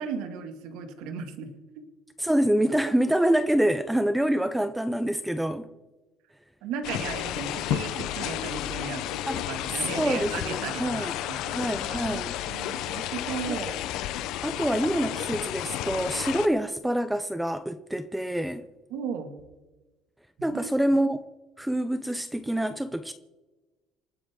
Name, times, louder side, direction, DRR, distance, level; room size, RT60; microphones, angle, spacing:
voice 1, 0.0-1.5 6.6-13.8 18.9-19.3 20.5-20.7, right 6 dB, 80° right, 2.1 m, -36 dB
voice 2, 2.2-5.7 9.3-9.5 10.0-11.2 11.5-12.3 13.5-13.6 14.4-18.6 20.4-21.2 21.6-23.1, right 1 dB, 5° right, 0.5 m, -26 dB
sound 1, 6.8-16.5, left 12 dB, 65° left, 0.8 m, -32 dB
28.0 x 9.7 x 3.8 m
cardioid pair, 170°, 0 cm